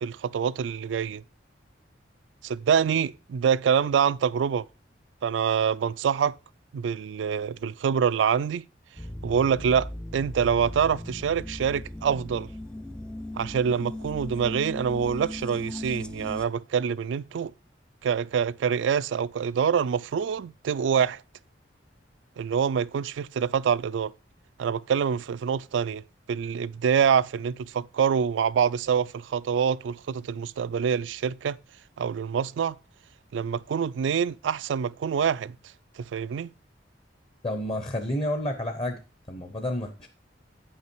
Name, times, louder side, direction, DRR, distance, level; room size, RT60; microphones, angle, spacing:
voice 1, 0.0-1.2 2.4-4.7 5.2-6.3 6.7-8.6 9.2-12.5 13.4-17.5 18.0-21.2 22.4-24.1 24.6-26.0 26.3-31.6 32.0-32.8 33.3-35.6 36.0-36.5, right 7 dB, 80° right, 0.3 m, -26 dB
sound 1, 9.0-16.4, left 1 dB, 5° left, 0.3 m, -38 dB
voice 2, 37.4-39.0 39.3-40.1, left 1 dB, 30° left, 0.7 m, -30 dB
8.6 x 5.6 x 4.5 m
head